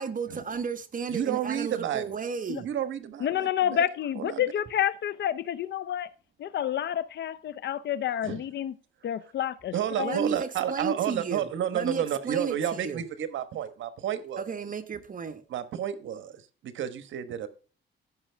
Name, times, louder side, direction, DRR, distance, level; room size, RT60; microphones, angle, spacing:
voice 1, 0.0-2.7 10.0-11.4 11.7-13.0 14.4-15.4, right 5 dB, 45° right, 1.4 m, -33 dB
voice 2, 1.1-2.2 2.6-3.8 4.2-4.5 8.2-8.4 9.7-14.5 15.5-17.5, right 10 dB, 75° right, 1.2 m, -31 dB
voice 3, 3.2-6.1 6.4-8.7 9.0-10.2, left 10 dB, 60° left, 0.6 m, -29 dB
15.0 x 6.2 x 3.4 m
cardioid pair, 90°, 20 cm